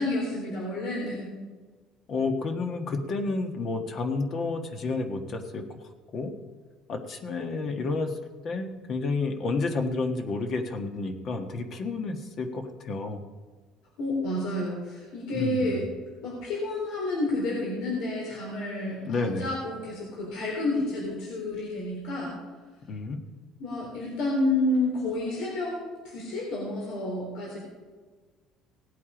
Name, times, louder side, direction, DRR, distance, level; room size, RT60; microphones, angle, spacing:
voice 1, 0.0-1.4 14.0-15.8 16.2-22.4 23.6-25.8 26.0-27.6, left 2 dB, 75° left, -3 dB, 3.7 m, -30 dB
voice 2, 2.1-5.8 6.1-6.3 6.9-8.2 8.4-13.2 15.3-15.8 19.0-19.5 22.9-23.2, left 3 dB, 45° left, 5 dB, 1.5 m, -30 dB
18.0 x 8.4 x 5.0 m, 1.4 s
cardioid pair, 140°, 0 cm